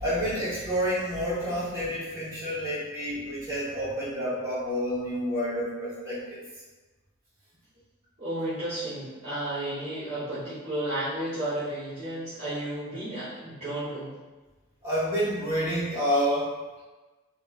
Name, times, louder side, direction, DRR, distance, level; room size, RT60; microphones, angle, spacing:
voice 1, 0.0-6.4 14.8-16.5, equal, 15° right, -10 dB, 1.2 m, -29 dB
voice 2, 8.2-14.2, right 1 dB, 35° right, -13 dB, 0.8 m, -33 dB
3.0 x 2.2 x 2.4 m, 1.2 s
head